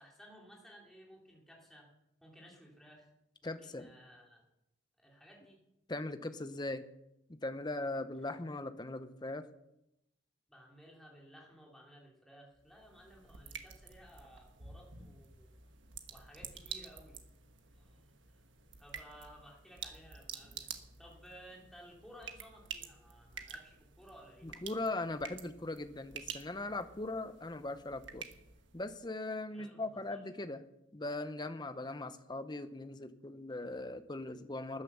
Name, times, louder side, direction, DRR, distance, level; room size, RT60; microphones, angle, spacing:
voice 1, 0.0-1.9 2.2-3.1 3.4-4.4 5.0-5.6 8.2-8.3 10.5-15.5 16.1-17.2 17.7-18.4 18.8-20.7 21.0-24.5 29.5-30.3, equal, ahead, -3 dB, 3.1 m, -57 dB
voice 2, 3.4-3.9 5.9-6.8 7.3-9.5 24.4-28.3 28.7-30.6 30.9-34.8, left 2 dB, 20° left, 10 dB, 0.8 m, -40 dB
sound 1, 12.5-29.0, right 7 dB, 65° right, 1.4 m, -50 dB
13.0 x 9.9 x 6.9 m, 0.86 s
head